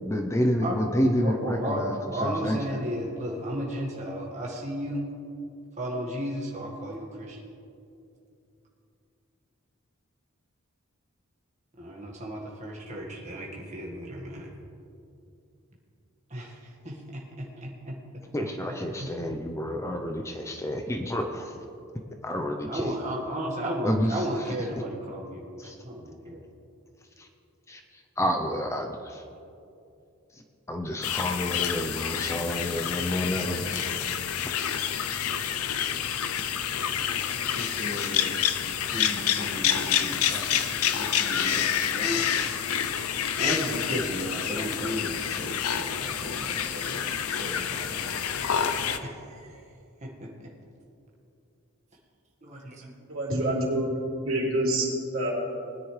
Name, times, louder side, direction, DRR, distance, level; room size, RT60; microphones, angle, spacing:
voice 1, 0.0-1.9 2.2-2.6 18.3-21.5 22.2-22.9 23.8-24.1 25.6-25.8 27.2-27.3 27.7-27.8 28.2-29.2 30.7-33.9 34.4-34.5 38.0-38.1, equal, 15° left, 4 dB, 0.6 m, -29 dB
voice 2, 1.0-5.1 5.8-7.4 11.8-14.5 16.3-18.0 19.0-19.1 22.7-26.4 33.7-33.9 37.6-48.2 49.0-49.6 50.0-50.5 52.4-52.9, equal, 30° right, -3 dB, 1.6 m, -35 dB
sound 1, 31.0-49.0, left 9 dB, 85° left, 0.6 m, -28 dB
voice 3, 53.1-53.9 54.2-55.3, right 1 dB, 65° right, -4 dB, 3.4 m, -26 dB
20.0 x 10.0 x 3.3 m, 2.6 s
head